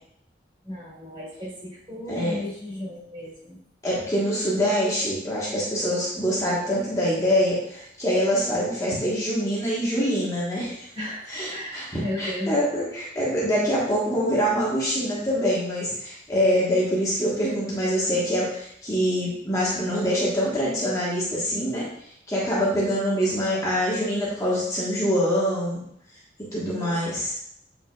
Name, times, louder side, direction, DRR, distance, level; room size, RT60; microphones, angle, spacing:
voice 1, 0.6-3.6 10.9-12.6 26.6-27.2, left 1 dB, 30° right, -6 dB, 2.5 m, -35 dB
voice 2, 3.8-10.8 11.3-21.9 22.3-25.8 26.5-27.3, equal, 20° left, -6 dB, 1.4 m, -25 dB
8.0 x 5.1 x 2.4 m, 0.70 s
head